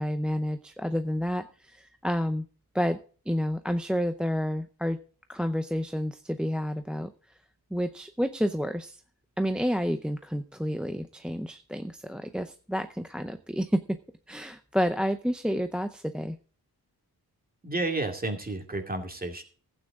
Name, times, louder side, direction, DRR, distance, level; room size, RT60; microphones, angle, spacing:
voice 1, 0.0-2.4 2.7-3.0 3.3-5.0 5.3-7.1 7.7-9.0 9.4-13.8 14.3-16.4, equal, ahead, 9 dB, 0.6 m, -29 dB
voice 2, 17.6-19.4, right 2 dB, 25° right, 4 dB, 2.3 m, -31 dB
15.5 x 9.0 x 3.6 m, 0.40 s
wide cardioid pair, 135°, 38 cm